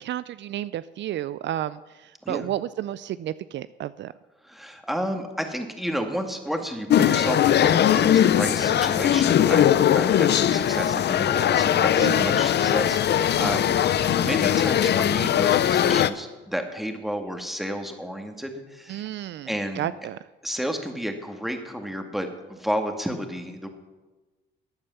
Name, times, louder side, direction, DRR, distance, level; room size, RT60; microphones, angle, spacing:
voice 1, 0.0-4.1 12.0-12.4 18.9-19.5 19.8-20.2, right 12 dB, 65° right, 16 dB, 0.4 m, -32 dB
voice 2, 4.4-13.7 14.2-19.1 19.5-19.9 20.4-23.7, equal, ahead, 4 dB, 1.9 m, -31 dB
sound 1, 6.9-16.1, left 10 dB, 60° left, 0.6 m, -20 dB
13.0 x 8.7 x 7.0 m, 1.2 s
cardioid pair, 90°, 20 cm